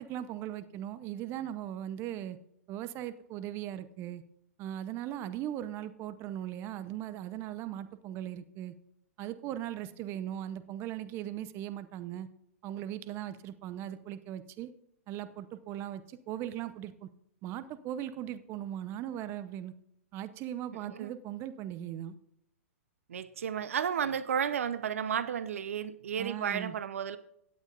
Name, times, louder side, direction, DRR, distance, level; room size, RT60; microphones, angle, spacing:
voice 1, 0.0-2.4 2.7-4.2 4.6-8.7 9.2-12.3 12.6-14.7 15.1-17.1 17.4-19.7 20.1-22.1 26.2-26.8, right 11 dB, 30° right, 13 dB, 0.7 m, -39 dB
voice 2, 23.1-27.2, right 8 dB, 70° right, 14 dB, 0.7 m, -33 dB
17.0 x 9.1 x 2.5 m, 0.74 s
hypercardioid pair, 120°, 8 cm